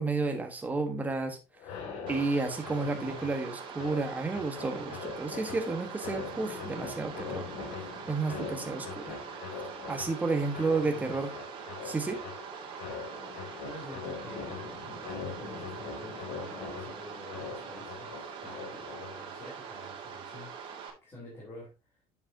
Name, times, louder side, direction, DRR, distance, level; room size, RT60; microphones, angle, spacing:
voice 1, 0.0-1.4 2.1-7.5 8.1-9.2 9.9-11.3 11.8-12.2, right 3 dB, 15° right, 5 dB, 1.4 m, -31 dB
sound 1, 1.6-19.4, left 5 dB, 80° left, 2.6 m, -42 dB
sound 2, 2.1-20.9, right 6 dB, 45° right, 2.1 m, -43 dB
voice 2, 2.8-3.2 10.8-11.2 13.6-20.5 21.0-21.7, left 1 dB, 20° left, -5 dB, 3.6 m, -48 dB
8.6 x 7.0 x 2.8 m, 0.26 s
cardioid pair, 155°, 11 cm